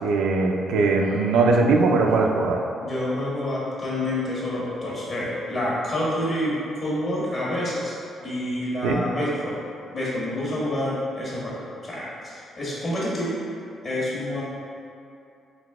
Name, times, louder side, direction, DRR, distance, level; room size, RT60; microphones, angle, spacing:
voice 1, 0.0-2.6 8.8-9.0, right 3 dB, 85° right, 1 dB, 0.4 m, -20 dB
voice 2, 2.8-7.9 8.2-9.6 9.9-13.4 13.8-14.4, left 1 dB, 45° left, -7 dB, 1.3 m, -28 dB
3.9 x 2.7 x 3.5 m, 2.6 s
cardioid pair, 90°, 0 cm